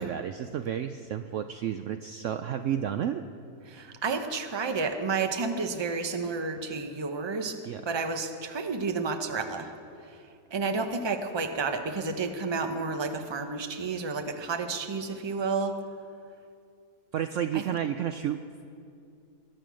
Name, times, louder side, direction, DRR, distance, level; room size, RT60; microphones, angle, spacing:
voice 1, 0.0-3.3 7.6-7.9 17.1-18.6, right 9 dB, 70° right, 9 dB, 0.8 m, -31 dB
voice 2, 3.7-7.6 7.8-9.7 10.0-10.2 10.5-15.8 17.5-17.6, right 4 dB, 25° right, 6 dB, 0.7 m, -31 dB
22.5 x 8.7 x 6.3 m, 2.5 s
omnidirectional pair, 1.6 m